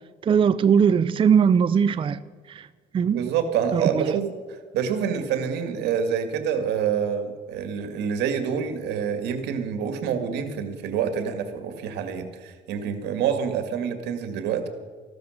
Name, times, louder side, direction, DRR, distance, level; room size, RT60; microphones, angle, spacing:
voice 1, 0.2-2.2 2.5-2.7 2.9-3.2 3.7-4.2, right 7 dB, 30° right, 14 dB, 0.5 m, -20 dB
voice 2, 3.1-4.4 4.7-14.7, right 7 dB, 85° right, 8 dB, 2.0 m, -27 dB
15.0 x 12.5 x 6.4 m, 1.5 s
cardioid pair, 110°, 17 cm